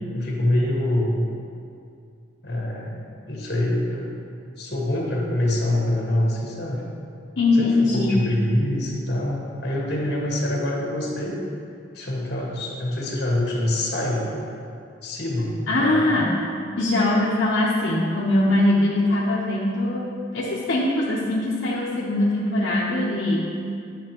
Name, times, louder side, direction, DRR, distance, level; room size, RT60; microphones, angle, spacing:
voice 1, 0.1-1.3 2.4-4.1 4.6-6.8 7.5-11.4 11.9-14.3 15.0-16.2, left 1 dB, 60° left, -3 dB, 1.5 m, -25 dB
voice 2, 7.4-8.2 15.7-16.3 16.8-23.5, left 2 dB, 75° left, -6 dB, 0.8 m, -22 dB
10.0 x 5.9 x 2.9 m, 2.4 s
head